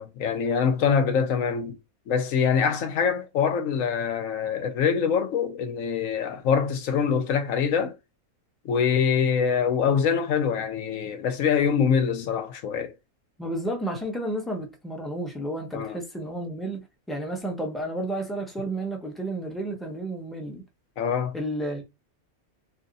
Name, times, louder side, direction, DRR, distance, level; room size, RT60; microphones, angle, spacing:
voice 1, 0.0-1.8 2.1-8.0 8.6-12.9 15.7-16.0 21.0-21.3, left 7 dB, 70° left, 1.0 m, -24 dB
voice 2, 13.4-20.6 21.3-21.8, right 1 dB, ahead, 0.6 m, -32 dB
2.8 x 2.6 x 3.9 m
omnidirectional pair, 1.5 m